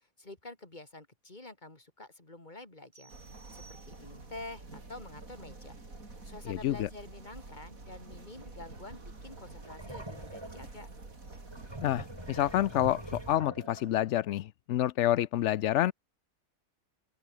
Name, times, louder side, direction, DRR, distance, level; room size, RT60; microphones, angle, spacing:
voice 1, 0.0-5.8 6.2-10.9, left 2 dB, 30° left, 3.5 m, -48 dB
sound 1, 2.9-4.4, right 5 dB, 90° right, 3.0 m, -58 dB
sound 2, 3.1-13.4, right 3 dB, 60° right, 4.5 m, -48 dB
voice 2, 6.5-6.9 11.8-15.9, left 13 dB, 65° left, 0.7 m, -28 dB
sound 3, 8.6-8.8 9.2-14.1, right 1 dB, 15° right, 3.6 m, -44 dB
open air
omnidirectional pair, 1.6 m